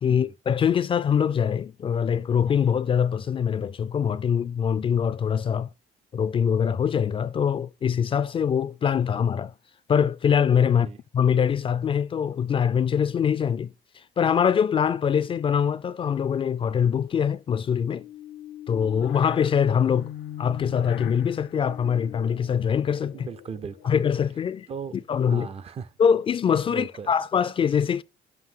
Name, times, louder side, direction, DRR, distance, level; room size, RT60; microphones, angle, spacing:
voice 1, 0.0-5.7 6.1-9.5 9.9-10.9 11.1-13.7 14.2-18.0 18.7-20.1 20.4-23.3 23.8-24.7 25.1-25.5 26.0-28.0, left 7 dB, 30° left, 0.4 m, -23 dB
sound 1, 17.9-24.3, left 12 dB, 90° left, 0.6 m, -40 dB
voice 2, 23.1-23.9 24.7-24.9 25.2-26.0 26.7-27.1, right 6 dB, 35° right, 0.5 m, -37 dB
7.5 x 2.7 x 5.5 m
cardioid pair, 110°, 17 cm